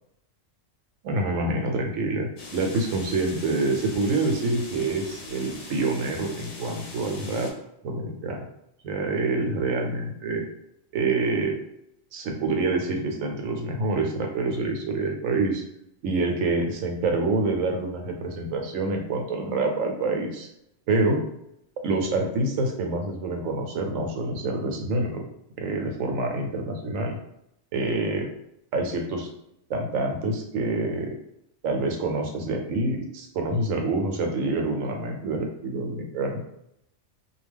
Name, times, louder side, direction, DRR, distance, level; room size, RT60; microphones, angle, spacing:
voice 1, 1.0-7.5 7.8-8.4 8.8-10.4 10.9-11.6 12.1-15.6 16.0-20.5 20.9-21.2 21.8-25.2 25.6-27.2 27.7-28.3 28.7-29.3 29.7-31.1 31.6-36.4, right 2 dB, 85° right, 2 dB, 1.0 m, -26 dB
sound 1, 2.4-7.5, left 3 dB, 70° left, 0.9 m, -41 dB
2.4 x 2.1 x 3.4 m, 0.78 s
omnidirectional pair, 1.3 m